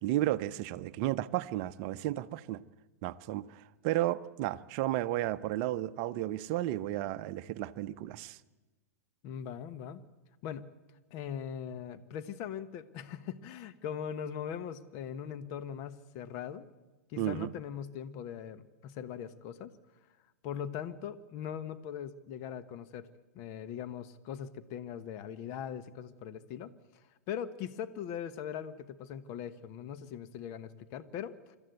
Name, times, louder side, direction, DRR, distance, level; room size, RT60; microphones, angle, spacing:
voice 1, 0.0-2.6 3.0-8.4 17.2-17.5, right 14 dB, 45° right, 0.7 m, -33 dB
voice 2, 9.2-10.0 10.4-10.7 11.1-16.6 17.1-19.7 20.4-23.1 23.3-26.7 27.3-31.6, left 8 dB, 40° left, 1.2 m, -40 dB
26.5 x 13.5 x 8.1 m
figure-of-eight pair, 105°, 9 cm